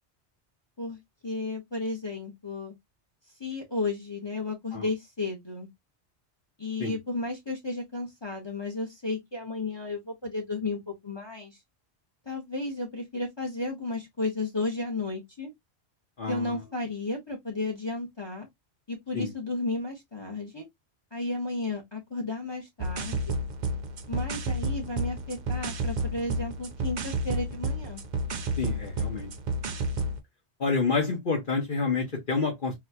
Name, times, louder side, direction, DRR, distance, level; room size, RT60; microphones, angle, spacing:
voice 1, 0.8-2.7 3.4-5.7 6.6-11.6 12.2-15.5 16.3-18.5 18.9-20.6 21.1-23.2 24.1-28.0, left 3 dB, 25° left, 1.0 m, -33 dB
voice 2, 16.2-16.5 19.1-19.3 28.6-29.3 30.6-32.7, left 4 dB, 50° left, 1.1 m, -28 dB
sound 1, 22.8-30.2, right 1 dB, 50° right, 0.6 m, -31 dB
3.9 x 2.3 x 2.8 m
omnidirectional pair, 1.1 m